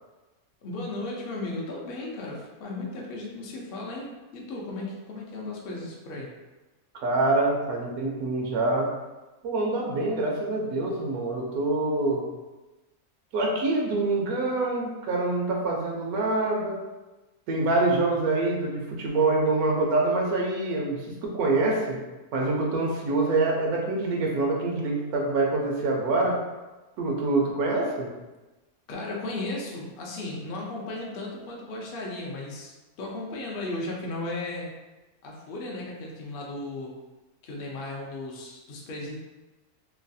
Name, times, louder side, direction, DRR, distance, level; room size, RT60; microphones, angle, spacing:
voice 1, 0.6-6.3 28.9-32.7 33.0-34.7 35.2-36.9 37.4-39.2, left 2 dB, 65° left, -2 dB, 0.5 m, -35 dB
voice 2, 6.9-8.9 9.4-12.2 13.3-16.8 17.5-22.0 22.3-26.4 27.0-28.1, right 2 dB, 80° right, -1 dB, 1.1 m, -25 dB
3.1 x 2.3 x 2.6 m, 1.1 s
omnidirectional pair, 1.5 m